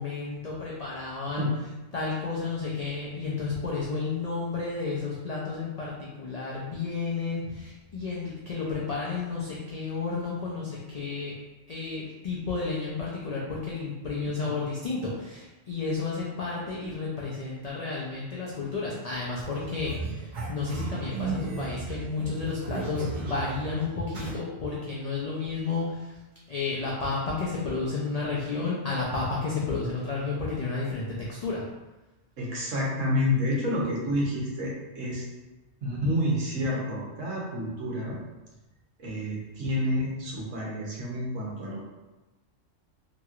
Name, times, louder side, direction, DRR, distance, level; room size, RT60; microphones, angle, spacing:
voice 1, 0.0-1.5 1.9-11.3 11.7-26.1 26.5-31.0 31.3-31.6, left 4 dB, 80° left, -5 dB, 0.3 m, -32 dB
sound 1, 19.3-24.3, right 4 dB, 55° right, 0.5 m, -35 dB
voice 2, 32.4-35.3 35.8-38.2 39.0-41.9, left 1 dB, 80° right, -4 dB, 1.2 m, -29 dB
2.9 x 2.9 x 2.4 m, 1.1 s
omnidirectional pair, 1.3 m